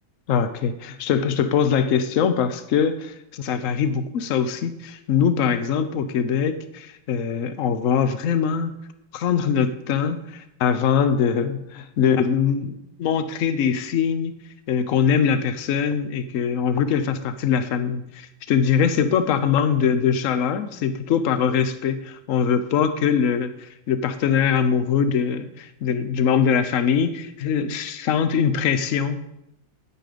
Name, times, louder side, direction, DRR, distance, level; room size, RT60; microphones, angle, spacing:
voice 1, 0.3-8.7 9.1-14.3 14.7-29.3, left 7 dB, 60° left, 11 dB, 0.9 m, -22 dB
9.6 x 9.2 x 5.1 m, 0.84 s
omnidirectional pair, 2.1 m